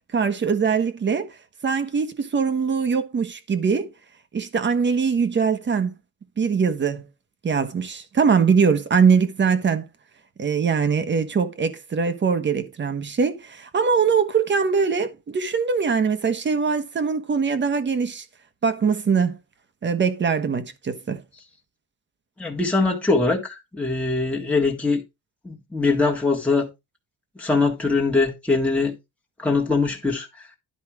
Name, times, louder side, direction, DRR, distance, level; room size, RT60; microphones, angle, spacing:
voice 1, 0.1-1.3 1.6-3.9 4.3-5.9 6.4-7.1 7.4-9.9 10.4-18.2 18.6-19.4 19.8-21.2, right 6 dB, 30° right, 1.3 m, -22 dB
voice 2, 22.4-25.0 25.4-26.7 27.4-29.0 29.4-30.4, left 3 dB, 5° left, 1.8 m, -22 dB
11.0 x 5.2 x 4.8 m
cardioid pair, 170°, 37 cm